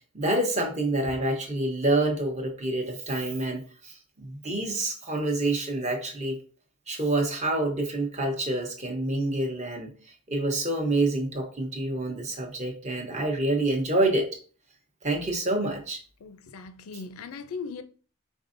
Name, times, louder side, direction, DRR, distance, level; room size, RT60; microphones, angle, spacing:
voice 1, 0.1-6.4 6.9-9.9 10.3-14.3 15.0-16.0, right 2 dB, 30° right, 0.9 m, -27 dB
voice 2, 16.2-17.8, left 5 dB, 80° left, 0.4 m, -38 dB
5.2 x 3.5 x 2.6 m
head